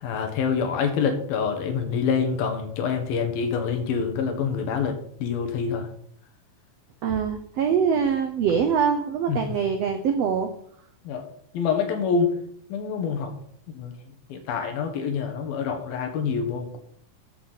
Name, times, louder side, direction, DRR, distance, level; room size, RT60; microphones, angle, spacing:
voice 1, 0.0-5.9 9.3-9.4 11.1-11.2 11.5-12.4 12.7-13.3 13.7-13.9 14.3-16.8, left 6 dB, 90° left, 5 dB, 3.3 m, -26 dB
voice 2, 7.0-10.5, right 7 dB, 75° right, 6 dB, 1.5 m, -23 dB
14.0 x 8.3 x 4.2 m, 0.66 s
omnidirectional pair, 4.1 m